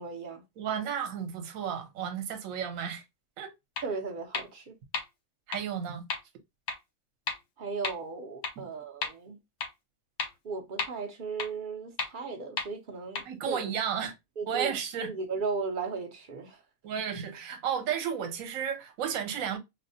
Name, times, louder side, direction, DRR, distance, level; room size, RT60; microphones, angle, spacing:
voice 1, 0.0-0.4 3.8-4.7 7.6-9.4 10.4-13.6 14.4-14.7 15.0-16.6, right 4 dB, 50° right, 0.6 m, -36 dB
voice 2, 0.6-3.0 3.4-3.5 5.5-6.0 13.2-14.1 14.5-15.1 16.8-19.6, right 8 dB, 65° right, 1.1 m, -33 dB
sound 1, 3.8-3.9 4.3-4.4 4.9-5.0 5.5-5.6 6.1-6.2 6.7-6.8 7.3-7.4 7.8-7.9 8.4-8.5 9.0-9.1 9.6-9.7 10.2-10.3 10.8-10.9 11.4-11.5 12.0-12.1 12.6-12.7 13.2-13.3, left 4 dB, 60° left, 0.8 m, -31 dB
4.0 x 2.1 x 2.6 m
omnidirectional pair, 1.6 m